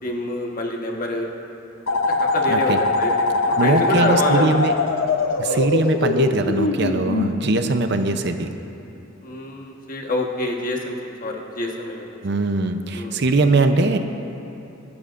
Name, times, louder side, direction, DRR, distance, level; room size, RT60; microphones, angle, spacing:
voice 1, 0.0-1.3 1.9-3.1 3.4-4.6 5.4-5.6 9.2-10.9 11.2-12.1 12.9-13.2, left 2 dB, 45° left, 0 dB, 1.3 m, -27 dB
sound 1, 1.9-7.3, left 3 dB, 85° left, 0.8 m, -22 dB
voice 2, 3.6-4.7 5.4-8.5 12.2-14.0, right 3 dB, 60° right, 7 dB, 0.7 m, -21 dB
23.5 x 12.0 x 2.5 m, 2.9 s
head